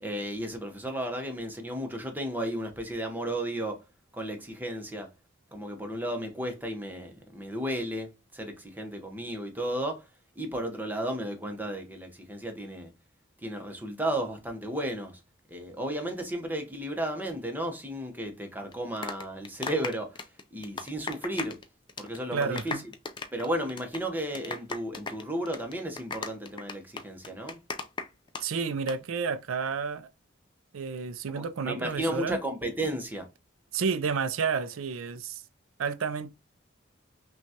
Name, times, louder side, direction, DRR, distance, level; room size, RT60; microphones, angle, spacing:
voice 1, 0.0-3.8 4.1-5.1 5.5-10.0 10.4-12.9 13.4-15.2 15.5-20.2 20.5-21.6 22.0-22.8 23.3-27.6 31.3-33.3, right 1 dB, 10° right, 0.8 m, -34 dB
sound 1, 18.7-21.6 21.9-22.2 22.4-28.4 28.7-29.0, left 4 dB, 25° left, 0.4 m, -37 dB
voice 2, 22.3-22.8 28.4-30.1 30.7-32.4 33.7-35.4 35.8-36.3, right 5 dB, 85° right, 0.5 m, -30 dB
5.8 x 2.3 x 2.7 m
head